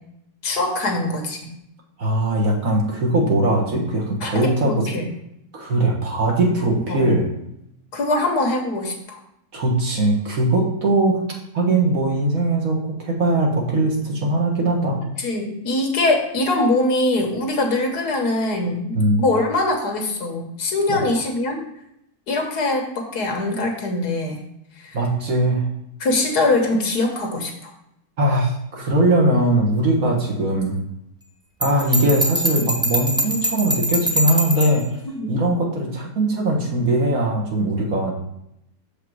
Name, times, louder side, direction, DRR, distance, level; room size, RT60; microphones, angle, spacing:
voice 1, 0.4-1.4 4.2-5.1 6.9-7.0 7.9-9.2 15.2-21.6 22.3-24.4 24.8-25.0 26.0-27.7 35.1-35.3, left 2 dB, 75° left, 2 dB, 1.8 m, -22 dB
voice 2, 2.0-4.9 5.5-7.3 9.5-11.2 11.5-15.0 18.9-19.2 20.9-21.0 24.9-25.7 28.2-30.8 31.6-34.8 35.3-38.1, right 1 dB, 60° right, 0 dB, 1.7 m, -20 dB
Bell, 31.6-34.8, equal, 5° right, 0.6 m, -23 dB
6.9 x 5.1 x 4.6 m, 0.79 s
omnidirectional pair, 1.7 m